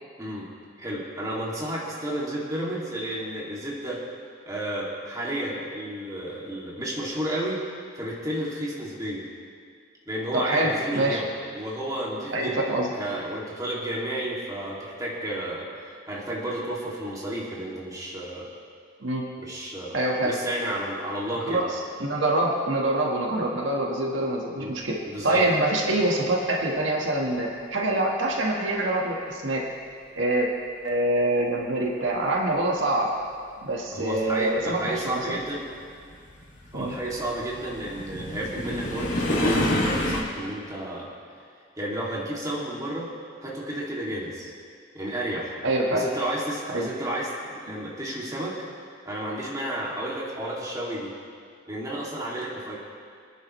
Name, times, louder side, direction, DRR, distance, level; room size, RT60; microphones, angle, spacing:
voice 1, 0.2-0.5 0.8-4.0 4.5-7.6 7.9-9.3 10.1-11.3 11.5-12.6 13.0-18.5 19.4-20.0 20.2-21.7 24.6-24.7 25.0-25.4 33.9-35.6 36.7-39.1 39.4-41.1 41.8-43.1 43.4-44.5 44.9-45.6 45.9-48.5 49.0-51.1 51.7-52.8, right 1 dB, 20° right, -5 dB, 2.5 m, -32 dB
voice 2, 10.3-11.2 12.3-12.9 19.0-19.3 19.9-20.3 21.4-25.0 25.2-29.6 30.2-30.5 30.8-33.1 33.6-35.4 36.7-37.0 45.6-46.1 46.7-46.9, right 1 dB, 75° right, -1 dB, 1.6 m, -25 dB
sound 1, 33.0-33.1 34.1-40.2, left 1 dB, 80° left, 2.7 m, -28 dB
25.0 x 10.0 x 3.2 m, 2.2 s
head